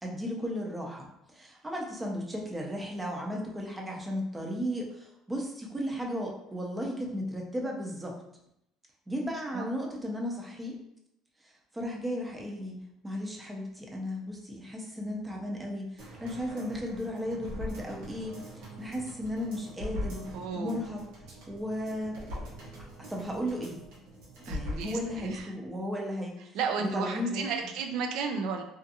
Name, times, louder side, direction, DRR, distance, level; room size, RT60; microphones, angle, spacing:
voice 1, 0.0-8.2 9.1-10.8 11.4-12.8 13.0-21.0 21.5-22.2 22.8-23.8 24.5-27.5, equal, 10° right, -1 dB, 0.5 m, -35 dB
sound 1, 16.0-25.4 25.8-25.9, left 1 dB, 90° right, 0.9 m, -42 dB
voice 2, 20.3-20.8 24.5-25.5 26.5-28.6, right 5 dB, 70° right, 5 dB, 0.4 m, -33 dB
2.5 x 2.4 x 2.7 m, 0.81 s
cardioid pair, 135°, 0 cm